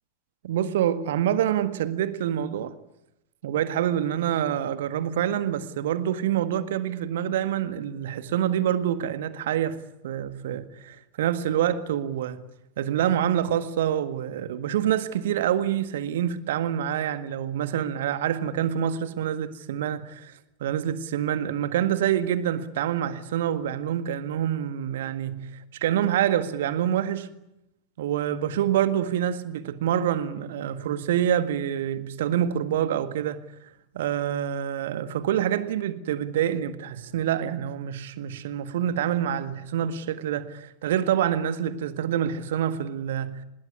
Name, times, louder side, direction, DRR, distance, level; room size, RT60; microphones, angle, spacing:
voice 1, 0.4-2.8 3.4-9.8 10.0-12.4 12.8-20.3 20.6-25.5 25.8-27.3 28.0-33.4 33.9-43.4, right 10 dB, 55° right, 1.7 m, -26 dB
24.5 x 21.0 x 9.6 m
figure-of-eight pair, 90°, 0 cm